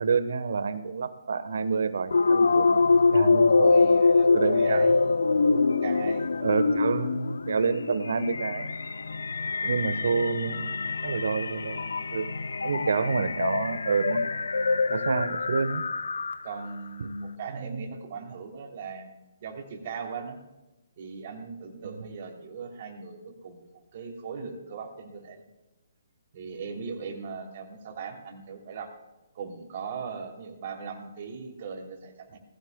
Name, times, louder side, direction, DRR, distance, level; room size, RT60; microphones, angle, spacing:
voice 1, 0.0-3.7 4.3-4.9 6.4-8.7 9.6-11.8 12.1-12.3 12.6-14.3 14.9-15.8 17.0-17.1 17.5-17.8 21.8-22.1, right 5 dB, 70° right, 13 dB, 1.1 m, -28 dB
sound 1, 2.1-16.7, left 4 dB, 80° left, 0.6 m, -24 dB
voice 2, 3.6-5.1 5.7-6.3 9.6-9.8 16.4-19.1 19.4-20.4 21.0-25.4 26.3-28.9 29.3-32.4, right 5 dB, 45° right, 2 dB, 2.9 m, -39 dB
19.0 x 15.5 x 2.2 m, 1.0 s
figure-of-eight pair, 140°, 0 cm